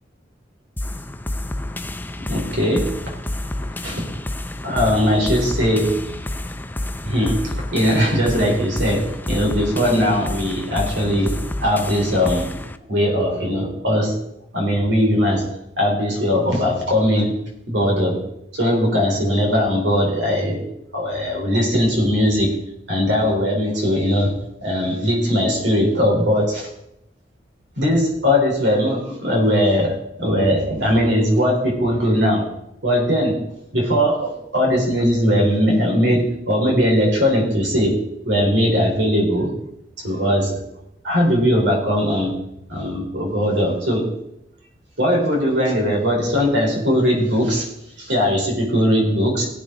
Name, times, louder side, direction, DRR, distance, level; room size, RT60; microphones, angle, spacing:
sound 1, 0.8-12.8, left 1 dB, 10° left, 0.5 m, -29 dB
voice 1, 2.2-2.9 3.8-4.0 4.6-6.0 7.0-11.3 11.6-12.5 12.9-14.1 14.5-15.4 15.8-17.3 17.7-18.2 18.5-20.6 20.9-22.5 22.9-24.3 24.6-26.7 27.8-29.9 30.2-32.5 32.8-33.4 33.7-38.0 38.2-39.5 40.0-40.6 41.0-42.3 42.7-44.1 45.0-47.7 48.0-49.5, equal, 75° right, 0 dB, 4.1 m, -19 dB
18.0 x 8.5 x 3.9 m, 0.82 s
head